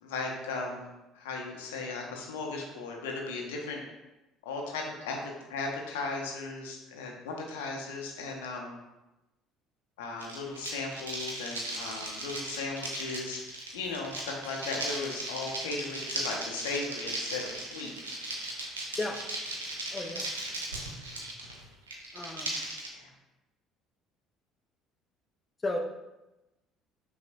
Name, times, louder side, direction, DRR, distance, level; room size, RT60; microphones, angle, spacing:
voice 1, 0.0-0.9 1.1-3.8 4.4-5.2 5.5-8.8 10.0-17.9 20.0-20.1 22.9-23.1, left 3 dB, 75° left, 0 dB, 0.6 m, -37 dB
sound 1, 10.2-22.9, right 2 dB, 85° right, 0.5 m, -37 dB
voice 2, 19.9-20.3 22.1-22.7 25.6-25.8, left 2 dB, 25° left, 3 dB, 0.4 m, -34 dB
5.5 x 2.0 x 2.6 m, 1.0 s
figure-of-eight pair, 55°, 0 cm